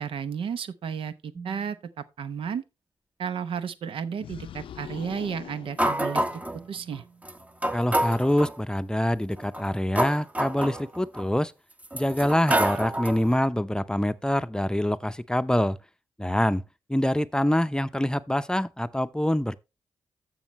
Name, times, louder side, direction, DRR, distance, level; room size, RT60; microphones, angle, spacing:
voice 1, 0.0-2.6 3.2-6.4 6.7-7.0, right 7 dB, 75° right, 0.8 m, -33 dB
sound 1, 1.3-1.9 4.8-8.3, right 5 dB, 30° right, 1.4 m, -51 dB
sound 2, 4.2-6.7, left 10 dB, 75° left, 0.5 m, -43 dB
sound 3, 5.8-6.6 7.2-7.3 7.6-8.6 9.4-11.2 11.8-13.3, right 1 dB, 15° right, 0.9 m, -27 dB
voice 2, 7.7-11.5 11.9-15.8 16.2-16.6 16.9-19.6, left 1 dB, 10° left, 0.6 m, -25 dB
14.0 x 5.7 x 3.1 m
supercardioid pair, 50°, 9 cm